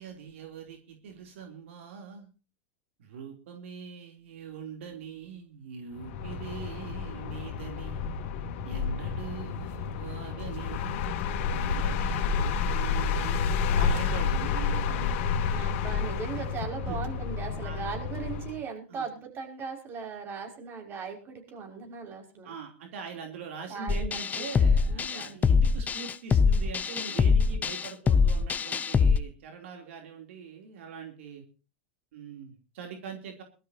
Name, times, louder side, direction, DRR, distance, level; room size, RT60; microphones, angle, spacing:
voice 1, 0.0-2.3 3.0-8.2 8.6-11.1 11.5-15.3 16.3-16.4 16.8-17.0 17.6-17.8 18.9-19.1 22.4-31.4 32.1-33.4, right 6 dB, 75° right, 3 dB, 3.1 m, -42 dB
sound 1, 5.9-18.6, left 6 dB, 60° left, 2.6 m, -30 dB
voice 2, 15.5-22.5 23.7-25.4, right 5 dB, 35° right, 3 dB, 5.6 m, -39 dB
sound 2, 23.9-29.2, left 5 dB, 25° left, 0.7 m, -24 dB
22.5 x 13.0 x 2.8 m, 0.33 s
hypercardioid pair, 110°, 7 cm